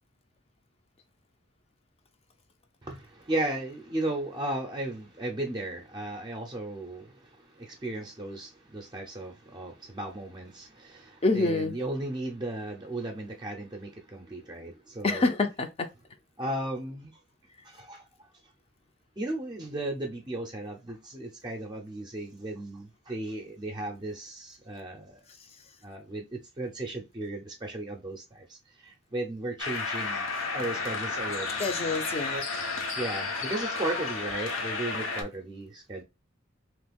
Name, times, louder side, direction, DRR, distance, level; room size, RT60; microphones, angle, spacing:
voice 1, 2.8-15.3 16.4-17.1 17.6-18.3 19.2-25.2 25.8-31.6 32.3-32.4 33.0-36.0, right 2 dB, 20° right, 0.5 m, -35 dB
voice 2, 11.2-11.7 15.0-15.9 31.6-32.4, left 3 dB, 30° left, 0.4 m, -26 dB
sound 1, 29.6-35.2, left 4 dB, 90° left, 0.8 m, -32 dB
3.0 x 2.3 x 3.4 m
head